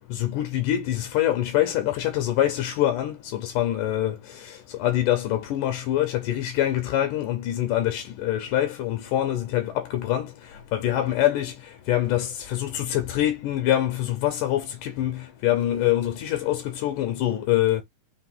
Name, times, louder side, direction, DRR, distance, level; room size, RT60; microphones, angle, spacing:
voice 1, 0.1-4.2 4.4-4.5 4.8-10.3 10.7-11.5 11.9-17.8, left 13 dB, 80° left, 2.1 m, -25 dB
5.5 x 2.5 x 3.7 m
omnidirectional pair, 4.0 m